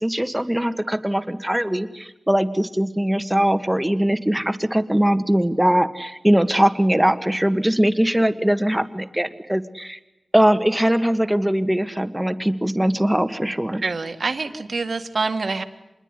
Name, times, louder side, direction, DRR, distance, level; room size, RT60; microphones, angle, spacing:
voice 1, 0.0-10.0 10.3-13.8, right 1 dB, 10° right, 9 dB, 1.7 m, -21 dB
voice 2, 13.8-15.6, right 4 dB, 65° right, 8 dB, 1.9 m, -26 dB
26.0 x 21.5 x 9.8 m, 0.97 s
cardioid pair, 45°, 0 cm